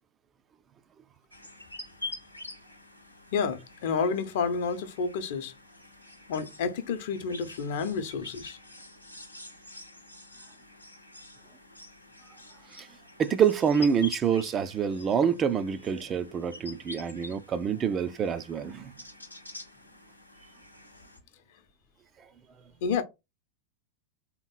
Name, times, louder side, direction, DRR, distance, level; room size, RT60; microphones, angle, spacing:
sound 1, 1.3-21.2, left 2 dB, 90° left, 0.8 m, -47 dB
voice 1, 3.3-5.5 6.3-8.6 22.8-23.0, left 5 dB, 55° left, 0.8 m, -30 dB
voice 2, 13.2-18.9, right 7 dB, 25° right, 0.4 m, -26 dB
3.5 x 3.0 x 4.0 m
figure-of-eight pair, 90°, 0 cm